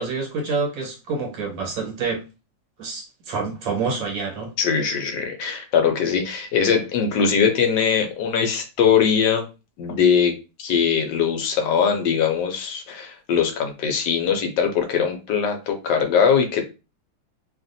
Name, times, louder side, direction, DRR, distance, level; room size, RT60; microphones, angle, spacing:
voice 1, 0.0-2.2 2.8-4.5, right 4 dB, 75° right, 0 dB, 1.7 m, -27 dB
voice 2, 4.6-9.4 9.8-10.3 10.6-16.7, left 7 dB, 70° left, 5 dB, 1.2 m, -21 dB
3.2 x 2.5 x 2.6 m, 0.29 s
omnidirectional pair, 2.1 m